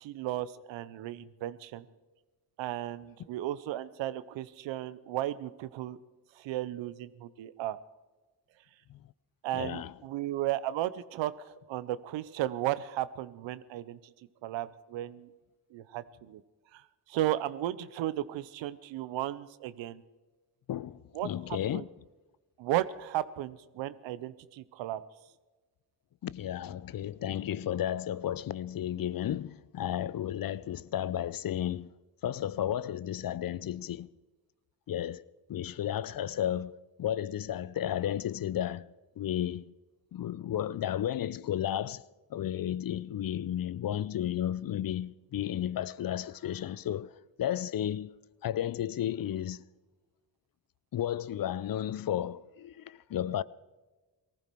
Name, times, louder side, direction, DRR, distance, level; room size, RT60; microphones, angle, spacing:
voice 1, 0.0-1.9 2.6-6.0 6.4-7.8 9.4-14.0 14.4-15.3 15.7-16.4 16.7-16.8 17.1-20.0 21.1-21.3 21.7-21.8 22.6-25.0, right 13 dB, 85° right, 0.7 m, -34 dB
voice 2, 9.5-9.9 20.7-21.9 26.2-31.9 32.2-34.1 34.9-35.2 35.5-38.9 39.2-39.7 40.1-42.0 42.3-47.1 47.4-48.1 48.4-49.6 50.9-53.4, left 11 dB, 50° left, 0.6 m, -33 dB
19.0 x 14.5 x 4.6 m
supercardioid pair, 50°, 44 cm